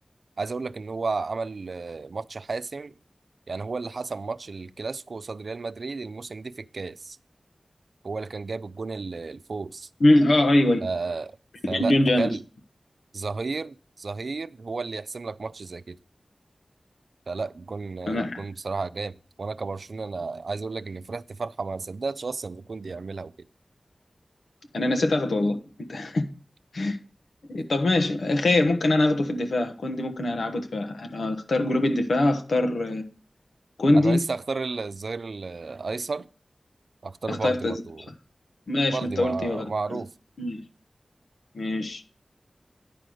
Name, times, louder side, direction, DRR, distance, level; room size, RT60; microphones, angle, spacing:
voice 1, 0.4-2.9 3.5-7.2 8.0-9.9 10.8-11.4 11.7-12.4 13.1-16.0 17.3-23.5 33.9-36.3 37.0-38.1 38.9-40.1, right 4 dB, 75° right, 0.4 m, -33 dB
voice 2, 10.0-10.8 11.6-12.3 18.1-18.4 24.7-25.6 25.9-26.2 26.7-27.0 27.5-33.0 33.8-34.2 37.3-37.8 38.7-39.7 39.9-40.0 40.4-40.6 41.5-42.0, left 1 dB, 90° left, 1.1 m, -23 dB
10.0 x 4.9 x 7.7 m
cardioid pair, 40°, 0 cm